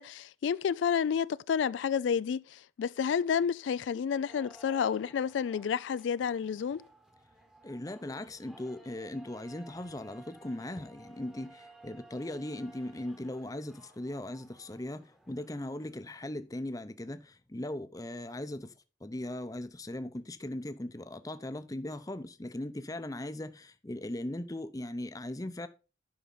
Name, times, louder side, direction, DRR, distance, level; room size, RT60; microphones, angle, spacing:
voice 1, 0.0-6.8, left 7 dB, 85° left, 0.3 m, -30 dB
sound 1, 4.3-16.0, right 1 dB, 5° right, 1.0 m, -56 dB
voice 2, 7.6-18.7 19.0-25.7, left 1 dB, 20° left, 0.6 m, -39 dB
11.0 x 5.6 x 3.9 m
head